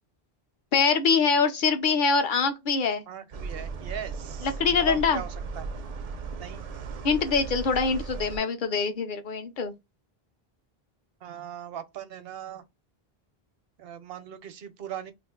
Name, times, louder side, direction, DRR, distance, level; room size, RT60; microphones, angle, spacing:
voice 1, 0.7-3.0 4.4-5.2 7.0-9.7, left 5 dB, 55° left, 0.8 m, -24 dB
voice 2, 3.1-4.5 4.9-5.7 6.4-6.6 11.2-12.6 13.8-15.1, right 10 dB, 75° right, 0.8 m, -39 dB
sound 1, 3.3-8.4, right 4 dB, 55° right, 0.4 m, -36 dB
2.5 x 2.4 x 3.6 m
omnidirectional pair, 1.0 m